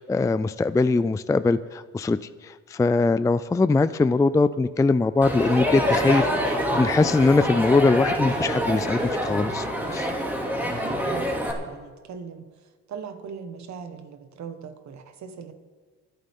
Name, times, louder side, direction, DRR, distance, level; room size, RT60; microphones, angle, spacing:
voice 1, 0.0-2.2 2.4-9.7 9.9-10.1, left 3 dB, 10° left, 14 dB, 0.3 m, -22 dB
Crowd, 5.2-11.5, equal, 5° right, 2.6 m, -26 dB
voice 2, 10.6-12.5 12.9-15.5, right 6 dB, 65° right, 8 dB, 1.6 m, -40 dB
25.0 x 9.1 x 3.7 m, 1.4 s
cardioid pair, 90°, 30 cm